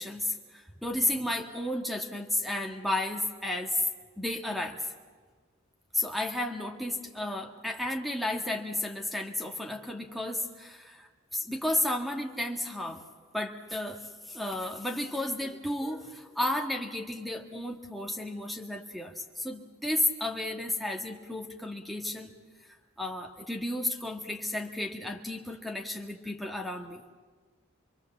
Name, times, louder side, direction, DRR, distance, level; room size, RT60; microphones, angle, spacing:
voice 1, 0.0-3.8 4.2-4.8 5.9-13.0 13.3-22.3 23.0-27.0, left 1 dB, ahead, 4 dB, 1.8 m, -33 dB
27.0 x 22.0 x 7.4 m, 1.5 s
head